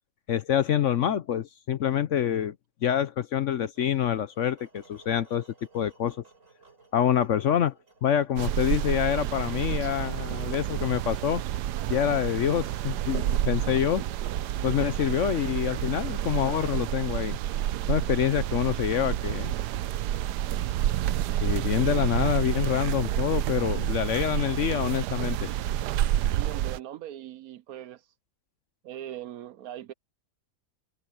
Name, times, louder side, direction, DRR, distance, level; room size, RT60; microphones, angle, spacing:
voice 1, 0.3-2.5 2.8-5.5 5.7-6.2 6.9-7.7 8.0-11.4 11.9-14.0 14.6-17.4 17.9-19.5 21.4-25.5, left 10 dB, 60° left, 0.8 m, -26 dB
sound 1, 3.7-19.9, right 3 dB, 50° right, 5.5 m, -61 dB
sound 2, 8.4-26.8, right 12 dB, 90° right, 1.2 m, -29 dB
voice 2, 26.3-28.0 28.8-29.9, right 12 dB, 70° right, 1.0 m, -40 dB
omnidirectional pair, 1.7 m